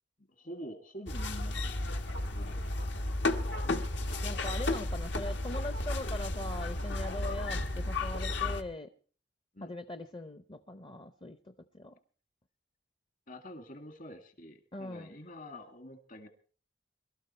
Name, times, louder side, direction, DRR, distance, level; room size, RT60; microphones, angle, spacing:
voice 1, 0.3-2.0 2.3-3.1 3.9-4.1 9.5-9.7 13.3-16.3, equal, 50° left, 6 dB, 2.0 m, -47 dB
sound 1, 1.1-8.6, left 2 dB, 70° left, 1.4 m, -33 dB
voice 2, 4.2-8.9 9.6-11.9 14.7-15.1, left 1 dB, 30° left, 10 dB, 0.7 m, -41 dB
23.0 x 13.0 x 4.3 m, 0.42 s
head